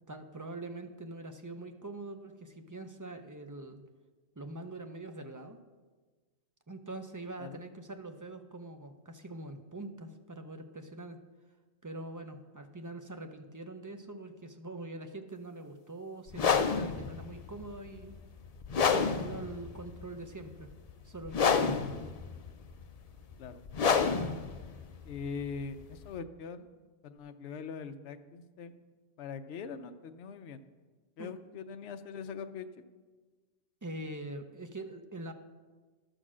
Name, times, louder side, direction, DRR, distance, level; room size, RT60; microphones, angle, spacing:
voice 1, 0.1-3.8 4.4-5.6 6.7-11.2 11.8-18.2 18.8-20.7 21.0-22.0 31.2-31.3 33.8-35.3, right 2 dB, 25° right, 6 dB, 0.4 m, -43 dB
sound 1, 16.3-26.2, left 6 dB, 50° left, 0.4 m, -30 dB
voice 2, 25.0-26.7 27.0-28.7 29.2-30.6 31.2-32.7, left 5 dB, 65° left, 8 dB, 0.9 m, -42 dB
12.0 x 6.5 x 6.1 m, 1.3 s
omnidirectional pair, 1.3 m